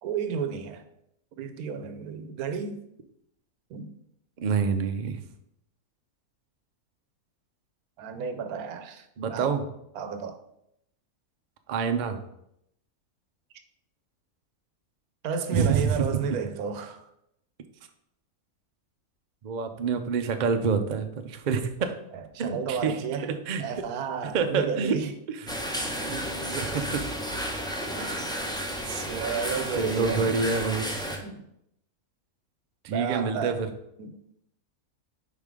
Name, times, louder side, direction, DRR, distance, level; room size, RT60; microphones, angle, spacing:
voice 1, 0.0-0.8 1.3-2.8 3.7-3.9 8.0-9.6 9.9-10.4 15.2-17.1 22.1-23.3 23.6-25.1 28.0-28.3 28.8-30.3 31.2-31.5 32.9-33.6 34.0-34.2, right 6 dB, 90° right, 9 dB, 1.2 m, -32 dB
voice 2, 4.4-5.2 9.2-9.6 11.7-12.2 15.5-16.1 19.4-21.9 22.4-23.0 23.3-23.6 24.3-25.0 25.3-25.6 26.0-27.1 29.8-30.9 32.8-33.7, right 5 dB, 55° right, 6 dB, 0.5 m, -27 dB
sound 1, 25.5-31.2, equal, 5° left, 0.4 m, -32 dB
5.3 x 4.6 x 4.8 m, 0.77 s
omnidirectional pair, 1.5 m